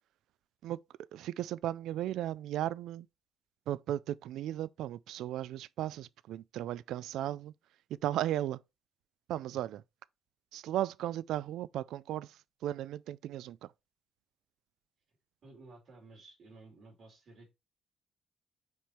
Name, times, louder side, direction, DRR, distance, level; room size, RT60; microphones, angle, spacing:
voice 1, 1.1-3.1 3.7-7.5 7.9-8.6 9.3-9.8 10.5-13.7, right 12 dB, 85° right, 0.3 m, -36 dB
voice 2, 15.4-17.5, right 2 dB, 55° right, 3.3 m, -54 dB
5.2 x 4.7 x 4.3 m
cardioid pair, 90°, 0 cm